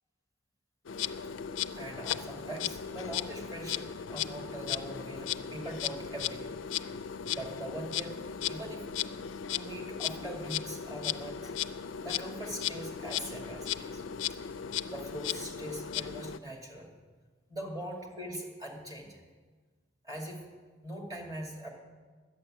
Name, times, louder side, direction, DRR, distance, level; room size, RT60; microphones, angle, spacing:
Insect, 0.9-16.4, left 9 dB, 70° left, 0.4 m, -36 dB
voice 1, 1.8-6.5 7.3-8.1 8.5-9.1 9.5-11.5 12.0-14.0 14.9-16.9 17.5-19.2 20.0-20.4 20.8-21.7, right 1 dB, 20° right, -1 dB, 2.2 m, -42 dB
11.0 x 8.7 x 7.5 m, 1.4 s
head